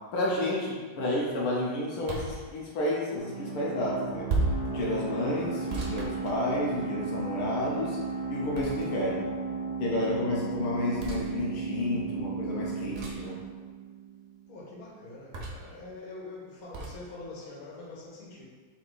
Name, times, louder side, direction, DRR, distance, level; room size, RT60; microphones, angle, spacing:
voice 1, 0.1-4.3 4.6-8.0 8.3-9.3 9.8-13.4, left 1 dB, 80° left, -4 dB, 1.9 m, -31 dB
sound 1, 2.0-2.4 4.3-4.7 5.7-6.9 8.5-9.1 11.0-11.2 12.9-13.3 15.3-15.7 16.7-17.0, right 2 dB, 70° right, 0.6 m, -33 dB
sound 2, 3.2-14.5, right 5 dB, 65° left, 1.9 m, -35 dB
voice 2, 14.5-18.4, left 2 dB, 45° left, -5 dB, 1.8 m, -44 dB
6.6 x 3.7 x 4.0 m, 1.4 s
omnidirectional pair, 2.4 m